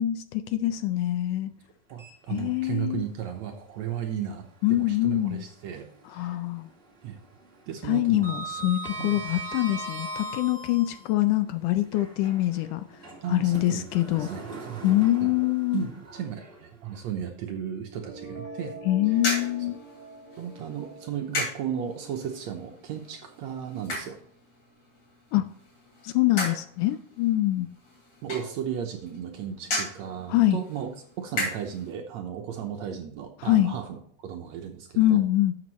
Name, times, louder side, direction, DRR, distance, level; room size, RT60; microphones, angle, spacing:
voice 1, 0.0-1.5 2.3-3.0 4.6-5.4 6.1-6.7 7.8-12.8 13.3-14.3 14.8-15.9 18.9-19.8 25.3-25.4 26.0-27.7 30.3-30.6 33.4-33.7 35.0-35.5, left 15 dB, 80° left, 2.0 m, -24 dB
Sliding door, 1.9-2.9 3.3-3.4 5.1-6.1 6.4-6.8 7.0-11.1 11.8-17.0, right 2 dB, 30° right, 1.2 m, -40 dB
voice 2, 1.9-6.4 7.0-7.2 7.7-8.5 9.0-9.2 13.2-13.9 14.2-14.9 15.2-15.3 15.7-18.8 19.1-19.2 20.4-24.2 28.2-30.9 31.2-35.2, right 9 dB, 70° right, 1.8 m, -35 dB
sound 1, 17.8-23.8, right 1 dB, 30° left, 2.9 m, -45 dB
sound 2, 19.1-31.9, left 2 dB, 45° left, 4.7 m, -37 dB
12.0 x 7.1 x 3.0 m
omnidirectional pair, 3.9 m